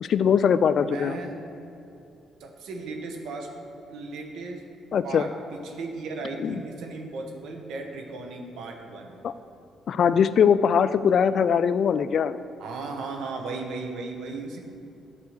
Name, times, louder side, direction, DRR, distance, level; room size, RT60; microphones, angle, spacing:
voice 1, 0.0-1.2 4.9-5.3 6.4-6.6 9.2-9.3 9.9-12.4, left 7 dB, 60° left, 14 dB, 0.3 m, -21 dB
voice 2, 0.8-1.3 2.4-3.5 3.9-4.7 5.0-9.2 12.6-14.6, right 3 dB, 80° right, 2 dB, 1.2 m, -36 dB
9.5 x 4.7 x 6.7 m, 2.8 s
cardioid pair, 90°, 0 cm